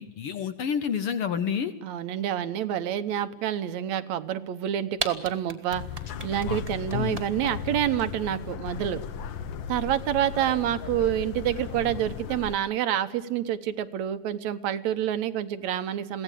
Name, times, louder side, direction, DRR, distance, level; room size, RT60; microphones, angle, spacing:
voice 1, 0.0-1.7 6.5-6.6 6.9-7.2, left 7 dB, 65° left, 10 dB, 1.5 m, -29 dB
voice 2, 1.8-5.8 6.2-9.0 9.7-16.2, right 11 dB, 75° right, 11 dB, 2.2 m, -28 dB
sound 1, 4.6-4.7 4.9-7.5, right 2 dB, 20° right, 1.0 m, -33 dB
sound 2, 5.7-12.6, left 7 dB, 80° left, 1.0 m, -36 dB
22.5 x 16.5 x 9.0 m, 1.0 s
omnidirectional pair, 3.3 m